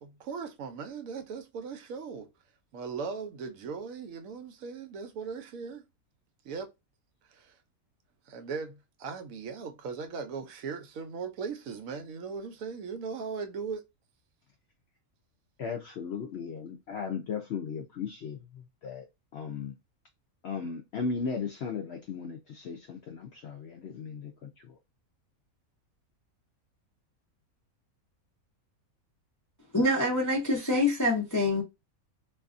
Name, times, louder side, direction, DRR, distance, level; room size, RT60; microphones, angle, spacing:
voice 1, 0.0-2.3 2.7-5.8 6.4-6.7 7.3-7.5 8.3-13.8, right 5 dB, 75° right, 0.9 m, -38 dB
voice 2, 15.6-19.1 19.3-19.8 20.4-24.8, left 5 dB, 65° left, 0.6 m, -36 dB
voice 3, 29.7-31.6, left 1 dB, 30° left, 0.3 m, -25 dB
2.6 x 2.5 x 2.4 m
omnidirectional pair, 1.5 m